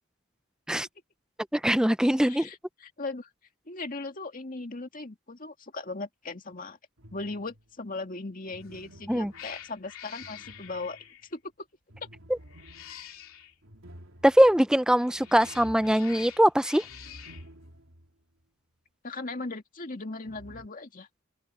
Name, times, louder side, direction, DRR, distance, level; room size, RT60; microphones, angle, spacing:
voice 1, 1.5-2.5 9.1-9.3 12.3-12.4 14.2-16.8, equal, 5° right, 0.5 m, -22 dB
voice 2, 2.3-3.3 3.7-6.8 7.1-11.0 11.3-11.4 19.0-21.1, left 3 dB, 40° left, 2.2 m, -38 dB
sound 1, 7.0-7.7 8.5-11.2 11.9-18.1 18.4-18.5 20.3-20.7, equal, 70° right, 4.0 m, -51 dB
Cat, 8.6-8.9 9.3-11.3 12.4-13.5 14.9-17.5, left 10 dB, 80° left, 3.1 m, -46 dB
head